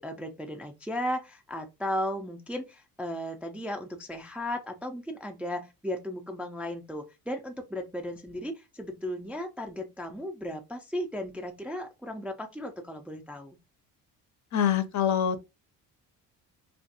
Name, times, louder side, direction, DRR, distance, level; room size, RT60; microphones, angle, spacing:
voice 1, 0.0-13.6, left 1 dB, 5° right, 0.3 m, -35 dB
voice 2, 14.5-15.5, left 9 dB, 45° left, 0.6 m, -25 dB
2.5 x 2.3 x 2.6 m
supercardioid pair, 70°, 39 cm